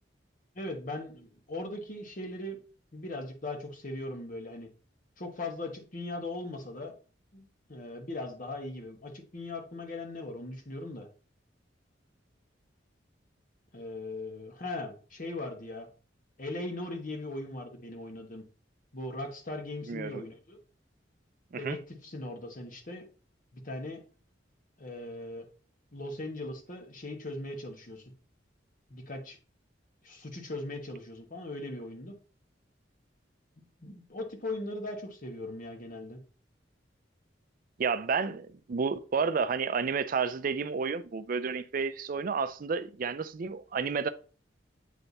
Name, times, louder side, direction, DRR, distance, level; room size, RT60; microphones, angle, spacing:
voice 1, 0.5-2.6 2.9-4.7 5.2-6.9 7.3-11.1 13.7-15.9 16.4-18.4 18.9-20.6 21.6-23.0 23.5-24.0 24.8-25.4 25.9-28.0 28.9-29.4 30.0-32.1 33.8-36.2, left 2 dB, 45° left, 1.3 m, -39 dB
voice 2, 19.9-20.2 21.5-21.8 37.8-44.1, right 5 dB, 50° right, 0.4 m, -31 dB
8.4 x 3.3 x 4.0 m
head